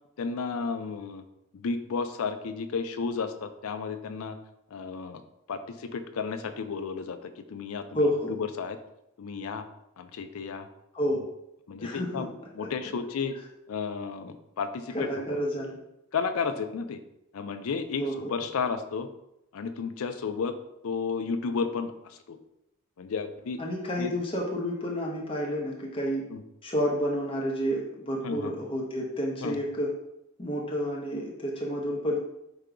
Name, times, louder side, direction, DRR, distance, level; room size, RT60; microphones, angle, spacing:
voice 1, 0.2-1.2 1.5-4.4 4.7-5.2 5.5-8.8 9.2-9.6 10.0-10.7 11.7-12.3 12.5-13.4 13.7-15.7 16.1-17.0 17.3-18.0 18.3-19.1 19.5-20.5 20.8-22.4 23.0-23.6 24.0-24.1 26.3-26.4 28.2-28.5 29.4-29.6, left 5 dB, 70° left, 9 dB, 0.4 m, -33 dB
voice 2, 7.9-8.3 10.9-11.2 11.8-12.3 14.9-15.8 18.0-18.3 23.6-26.2 26.6-29.9 30.4-32.2, equal, 25° left, -2 dB, 0.7 m, -30 dB
4.8 x 2.2 x 4.8 m, 0.84 s
head